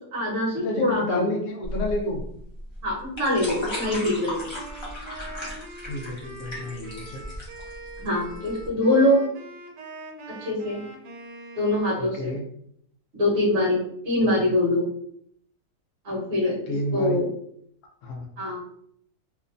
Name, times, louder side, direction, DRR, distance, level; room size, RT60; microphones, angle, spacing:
voice 1, 0.1-1.3 2.8-4.5 8.0-9.3 10.3-10.8 11.6-12.3 13.1-14.9 16.0-16.6 16.9-17.3 18.4-18.6, left 1 dB, 50° right, -4 dB, 1.2 m, -24 dB
voice 2, 0.6-2.2 5.8-7.2 12.0-12.4 16.7-17.2 18.0-18.3, left 1 dB, 65° left, 1 dB, 0.8 m, -30 dB
sound 1, 1.6-8.7, left 1 dB, 30° left, 0.5 m, -35 dB
Wind instrument woodwind instrument, 3.4-12.1, right 1 dB, 85° right, 1.2 m, -43 dB
2.9 x 2.1 x 2.5 m, 0.69 s
omnidirectional pair, 1.7 m